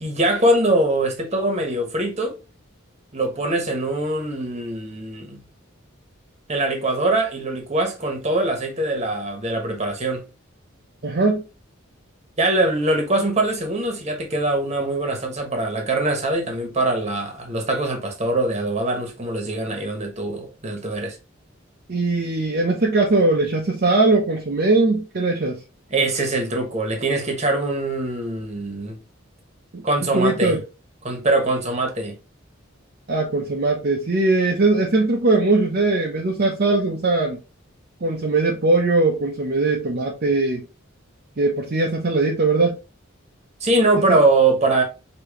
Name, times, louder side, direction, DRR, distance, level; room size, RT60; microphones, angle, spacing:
voice 1, 0.0-2.4 3.1-5.4 6.5-10.2 12.4-21.1 25.9-29.0 29.8-30.5 31.0-32.1 43.6-44.8, right 2 dB, 35° right, 1.2 m, -22 dB
voice 2, 11.0-11.4 21.9-25.6 29.7-29.8 30.1-30.6 33.1-37.4 38.0-40.6 41.4-42.8 43.9-44.2, right 3 dB, 50° right, 0.7 m, -20 dB
4.9 x 3.0 x 3.0 m
head